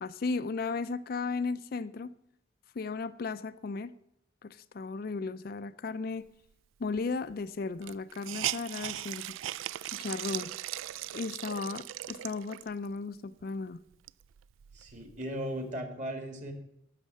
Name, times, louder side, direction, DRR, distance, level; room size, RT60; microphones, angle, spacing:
voice 1, 0.0-2.1 2.8-3.9 4.4-6.3 6.8-9.4 9.9-10.5 11.1-13.8, left 4 dB, 50° left, 13 dB, 0.4 m, -35 dB
Hiss, 7.0-7.1 7.3-7.4 7.8-12.9 13.4-13.5 13.9-15.3, right 14 dB, 80° right, 0.3 m, -38 dB
voice 2, 14.7-16.5, equal, 40° right, 5 dB, 1.9 m, -37 dB
12.0 x 6.5 x 7.3 m, 0.77 s
head